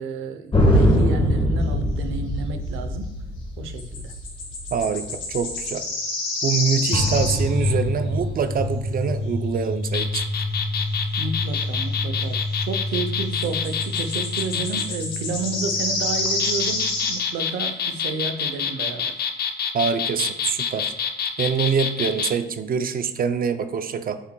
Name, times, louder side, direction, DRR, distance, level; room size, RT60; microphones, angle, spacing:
voice 1, 0.0-3.2 3.6-4.1 11.2-19.1, right 4 dB, 90° right, 7 dB, 0.7 m, -31 dB
sound 1, 0.5-5.6 6.9-16.9, left 1 dB, 25° left, 1.5 m, -25 dB
sound 2, 3.8-7.7 13.4-17.3, left 2 dB, 75° left, 2.0 m, -28 dB
voice 2, 4.7-5.8 6.4-10.2 19.7-20.9 21.4-24.2, right 6 dB, 45° right, 9 dB, 0.5 m, -25 dB
sound 3, 9.8-14.9 16.1-22.3, left 7 dB, 50° left, 0.7 m, -27 dB
8.3 x 5.7 x 2.3 m, 0.89 s
cardioid pair, 90°, 20 cm